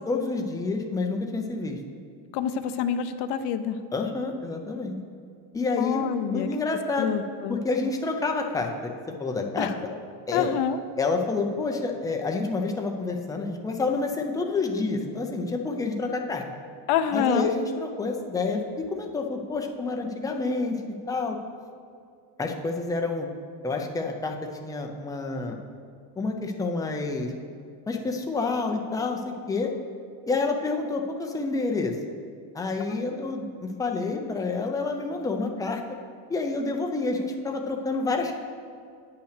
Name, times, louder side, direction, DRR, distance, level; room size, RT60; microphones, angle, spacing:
voice 1, 0.1-1.8 3.9-5.0 5.5-7.1 7.5-8.9 9.2-9.7 10.3-10.5 11.0-16.4 17.1-18.6 18.9-20.8 21.1-21.4 22.4-23.3 23.6-24.4 24.6-25.6 26.2-27.3 27.9-29.2 29.5-29.7 30.3-32.0 32.5-35.8 36.3-38.4, left 3 dB, 10° left, 3 dB, 0.3 m, -28 dB
voice 2, 2.3-3.8 5.8-6.5 7.0-7.6 9.6-9.7 10.3-10.8 16.9-17.5, left 8 dB, 60° left, 9 dB, 0.6 m, -27 dB
8.8 x 5.7 x 6.5 m, 2.4 s
cardioid pair, 170°, 47 cm